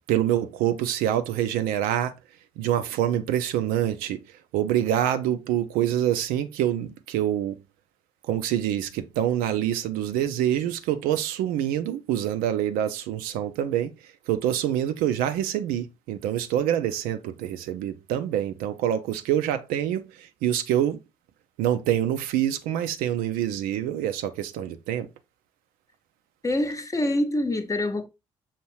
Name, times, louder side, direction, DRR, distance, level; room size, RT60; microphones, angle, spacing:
voice 1, 0.1-2.2 2.6-4.2 4.5-7.6 8.3-13.9 14.3-21.0 21.6-25.1, right 11 dB, 65° right, 0.4 m, -26 dB
voice 2, 26.4-28.1, left 1 dB, 20° left, 0.7 m, -25 dB
5.7 x 2.6 x 3.0 m
figure-of-eight pair, 45°, 16 cm